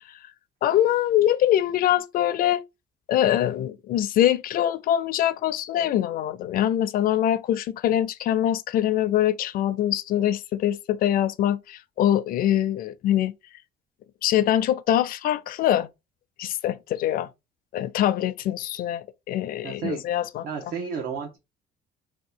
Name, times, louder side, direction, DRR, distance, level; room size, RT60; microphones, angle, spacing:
voice 1, 0.6-2.6 3.1-13.3 14.2-15.9 16.4-17.3 17.7-20.4, left 11 dB, 60° left, 0.4 m, -23 dB
voice 2, 19.6-20.0 20.4-21.4, right 6 dB, 65° right, 0.9 m, -32 dB
2.9 x 2.3 x 3.7 m
cardioid pair, 110°, 17 cm